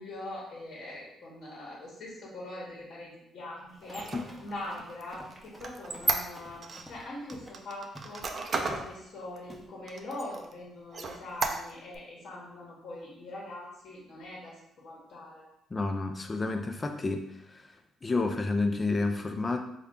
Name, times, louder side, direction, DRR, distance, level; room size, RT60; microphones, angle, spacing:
voice 1, 0.0-4.1 4.4-15.5, left 1 dB, 65° left, -4 dB, 1.0 m, -42 dB
Run, 3.7-7.6 7.9-8.2 8.7-9.0 9.5-9.7, right 1 dB, 5° right, 0.7 m, -50 dB
Squeak, 3.8-6.8 7.3-8.9 9.4-9.5 9.9-10.5 10.9-12.0, right 4 dB, 45° right, 0.4 m, -33 dB
voice 2, 15.7-17.2 18.0-19.6, left 3 dB, 30° left, 5 dB, 0.4 m, -29 dB
3.6 x 2.2 x 3.6 m, 0.80 s
cardioid pair, 90°, 0 cm